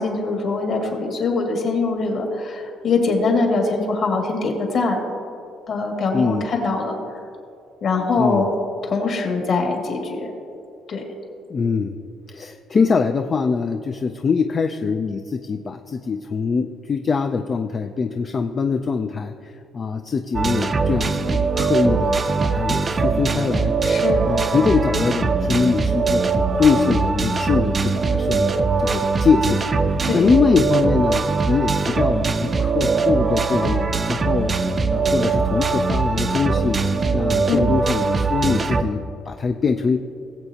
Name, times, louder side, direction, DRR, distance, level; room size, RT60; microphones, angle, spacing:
voice 1, 0.0-5.0 5.7-7.0 7.8-8.4 8.8-10.3 10.9-11.0 23.8-24.2 30.0-30.3 37.5-37.7, left 3 dB, 50° left, 1 dB, 2.1 m, -22 dB
voice 2, 6.1-6.4 8.2-8.5 11.5-12.0 12.3-23.7 24.3-28.5 28.8-34.5 34.9-36.8 37.1-40.0, left 5 dB, 30° left, 6 dB, 0.4 m, -23 dB
sound 1, 20.3-38.8, right 4 dB, 25° right, 0.5 m, -21 dB
19.0 x 7.9 x 2.8 m, 2.6 s
cardioid pair, 150°, 0 cm